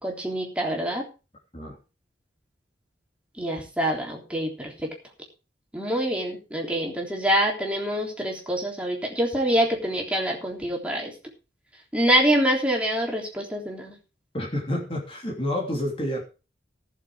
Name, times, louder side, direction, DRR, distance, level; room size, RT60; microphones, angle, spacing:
voice 1, 0.0-1.1 3.4-4.7 5.7-11.1 11.9-14.0, equal, 5° right, 3.6 m, -25 dB
voice 2, 14.3-16.2, left 1 dB, 30° left, 2.9 m, -29 dB
17.5 x 7.4 x 4.8 m
head